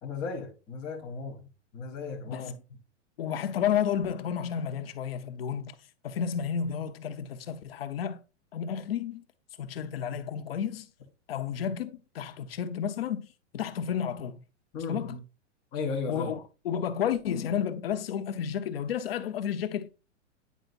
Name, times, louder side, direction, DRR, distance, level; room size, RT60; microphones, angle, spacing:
voice 1, 0.0-1.4 1.7-2.6 14.7-15.2 15.7-16.3, left 4 dB, 10° left, 0.6 m, -35 dB
voice 2, 3.2-5.8 6.0-8.2 8.5-9.2 9.6-10.9 11.3-13.3 13.5-14.4 14.9-15.1 16.1-19.9, left 8 dB, 55° left, 0.8 m, -31 dB
9.2 x 5.0 x 2.5 m
hypercardioid pair, 170°, 36 cm